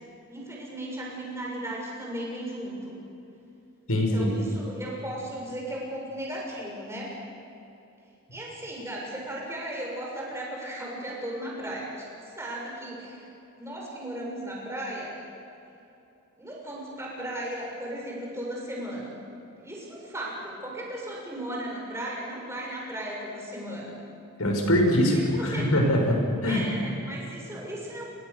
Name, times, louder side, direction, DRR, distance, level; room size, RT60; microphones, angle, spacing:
voice 1, 0.3-2.9 3.9-7.1 8.3-11.9 12.4-13.3 13.6-15.2 16.4-19.1 19.6-23.9 25.1-25.2 25.5-25.6 26.5-28.0, right 1 dB, 10° right, -3 dB, 6.9 m, -36 dB
voice 2, 3.9-4.3 24.4-26.7, left 1 dB, 85° left, 2 dB, 6.3 m, -23 dB
30.0 x 22.5 x 7.0 m, 2.8 s
head